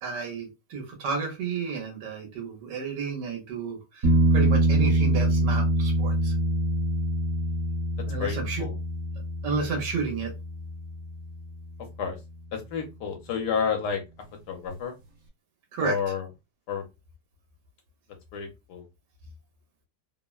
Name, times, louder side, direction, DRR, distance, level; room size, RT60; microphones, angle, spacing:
voice 1, 0.0-6.3 8.1-8.6 9.4-10.3 15.7-15.9, right 5 dB, 85° right, 2 dB, 1.5 m, -32 dB
sound 1, 4.0-11.6 14.7-14.8, right 1 dB, 60° right, 1.3 m, -25 dB
voice 2, 8.2-8.8 12.0-12.2 12.5-14.0 14.5-14.9 15.8-16.3 16.7-16.8 18.3-18.8, left 6 dB, 75° left, 3 dB, 1.2 m, -30 dB
3.3 x 2.1 x 2.3 m, 0.24 s
omnidirectional pair, 1.8 m